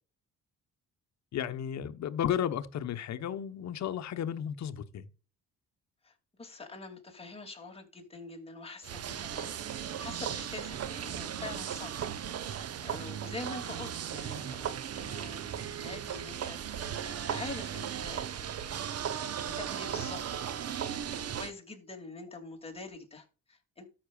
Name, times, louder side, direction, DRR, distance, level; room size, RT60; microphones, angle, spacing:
voice 1, 1.3-5.1, left 9 dB, 65° left, 1.0 m, -33 dB
voice 2, 6.0-18.8 19.1-23.9, left 3 dB, 20° left, 2.5 m, -46 dB
sound 1, 8.8-21.5, right 9 dB, 55° right, 0.9 m, -37 dB
13.0 x 6.0 x 2.4 m
cardioid pair, 90°, 30 cm